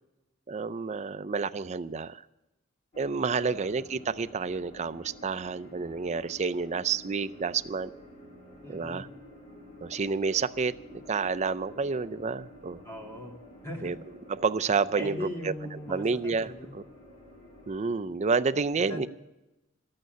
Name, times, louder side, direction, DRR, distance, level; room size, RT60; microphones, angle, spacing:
voice 1, 0.5-2.2 3.0-7.9 8.7-9.1 9.8-12.8 13.8-14.0 14.3-15.5 15.9-16.5 17.7-19.1, right 4 dB, 35° right, 12 dB, 0.4 m, -29 dB
sound 1, 2.9-17.8, left 1 dB, 35° left, 3.1 m, -50 dB
voice 2, 3.3-3.7 8.6-9.0 12.8-13.3 13.6-13.9 15.0-16.7 18.9-19.1, equal, 15° left, 0 dB, 2.5 m, -39 dB
12.5 x 8.8 x 9.1 m, 0.98 s
head